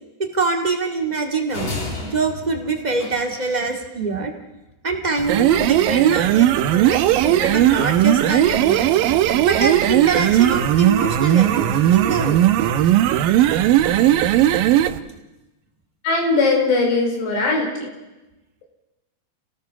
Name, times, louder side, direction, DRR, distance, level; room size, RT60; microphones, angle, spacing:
voice 1, 0.3-1.7 2.1-4.3 4.8-8.9 9.5-12.4 17.8-17.9, right 3 dB, 35° right, 2 dB, 0.6 m, -24 dB
sound 1, 1.5-3.7, left 2 dB, 30° left, 3.9 m, -32 dB
sound 2, 5.2-15.0, right 12 dB, 75° right, 2.3 m, -17 dB
voice 2, 16.0-17.9, left 3 dB, 85° left, 2 dB, 6.9 m, -20 dB
29.5 x 18.5 x 5.8 m, 1.0 s
omnidirectional pair, 4.8 m